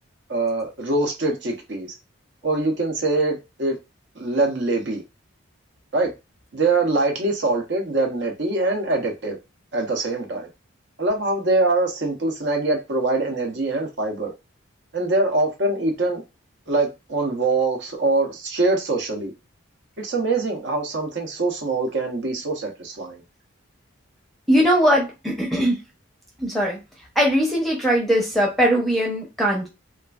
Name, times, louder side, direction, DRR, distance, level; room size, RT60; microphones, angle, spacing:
voice 1, 0.3-1.9 2.4-3.8 4.2-5.0 5.9-6.1 6.5-9.4 9.7-10.5 11.0-14.3 14.9-16.2 16.7-19.3 20.0-23.2, right 2 dB, 55° right, 0.7 m, -23 dB
voice 2, 24.5-25.8 26.4-26.8 27.2-29.7, equal, ahead, 0.6 m, -20 dB
3.0 x 2.4 x 2.3 m
head